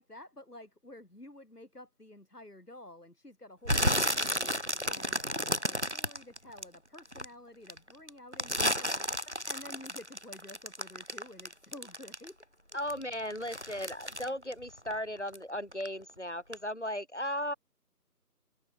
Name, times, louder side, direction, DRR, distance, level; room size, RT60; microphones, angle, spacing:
voice 1, 0.0-12.4, left 1 dB, 70° left, 4.2 m, -51 dB
sound 1, 3.6-7.2 7.7-12.4 12.7-15.4 15.7-16.1 16.5-16.6, equal, 45° right, 0.7 m, -32 dB
voice 2, 12.7-17.5, equal, 45° left, 4.4 m, -36 dB
open air
figure-of-eight pair, 180°, 48 cm